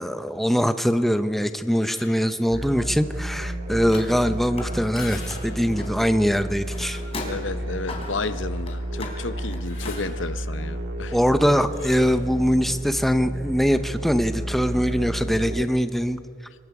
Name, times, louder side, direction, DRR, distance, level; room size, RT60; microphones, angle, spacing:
voice 1, 0.0-7.0 11.1-16.2, equal, ahead, 0.6 m, -22 dB
sound 1, 1.7-2.4 4.7-5.8 6.6-7.5 8.1-8.2 9.4-10.4 11.7-12.2, left 5 dB, 80° left, 6.8 m, -44 dB
sound 2, 2.5-15.7, right 1 dB, 60° right, 1.7 m, -32 dB
Car, 3.9-4.7 4.9-10.0, left 2 dB, 30° left, 3.2 m, -38 dB
voice 2, 7.2-11.2, left 3 dB, 65° left, 0.7 m, -32 dB
26.0 x 22.0 x 4.9 m
head